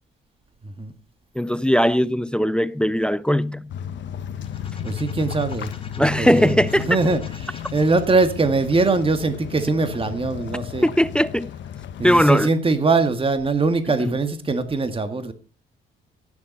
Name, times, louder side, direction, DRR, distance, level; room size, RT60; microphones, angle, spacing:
voice 1, 1.4-3.7 6.0-6.9 10.8-11.5 12.0-12.5 14.0-14.1, equal, 5° left, 0.5 m, -19 dB
sound 1, 3.7-12.3, left 9 dB, 65° left, 1.2 m, -34 dB
sound 2, 4.3-10.1, left 4 dB, 25° left, 1.9 m, -47 dB
voice 2, 4.8-5.7 6.0-10.9 12.0-15.3, right 3 dB, 25° right, 1.8 m, -22 dB
16.5 x 7.1 x 5.4 m
cardioid pair, 90°, 20 cm